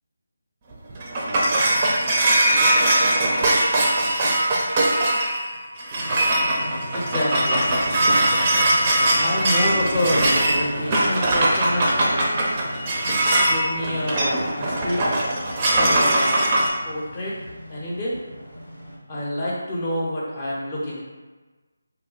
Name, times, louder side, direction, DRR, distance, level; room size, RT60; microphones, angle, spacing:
sound 1, 0.7-16.7, right 1 dB, 25° right, 0.5 m, -21 dB
Motorcycle, 5.9-19.0, equal, 85° left, 1.1 m, -36 dB
voice 1, 6.9-7.9 9.2-12.1 13.4-15.0 15.7-16.4 16.8-17.4 17.7-18.2 19.1-21.0, left 1 dB, 25° left, -6 dB, 0.7 m, -27 dB
2.3 x 2.1 x 3.9 m, 1.3 s
figure-of-eight pair, 160°, 0 cm